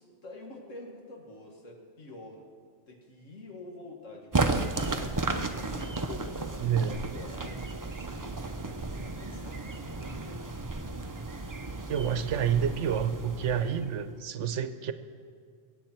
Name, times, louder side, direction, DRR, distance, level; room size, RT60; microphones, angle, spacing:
voice 1, 0.0-2.4 2.9-4.8 5.7-10.5, left 2 dB, 75° left, 0 dB, 2.2 m, -47 dB
sound 1, 4.3-14.1, right 3 dB, 35° right, 0.3 m, -34 dB
voice 2, 6.6-7.0 11.9-14.9, right 8 dB, 70° right, 11 dB, 1.0 m, -29 dB
22.0 x 8.4 x 4.4 m, 2.2 s
omnidirectional pair, 1.3 m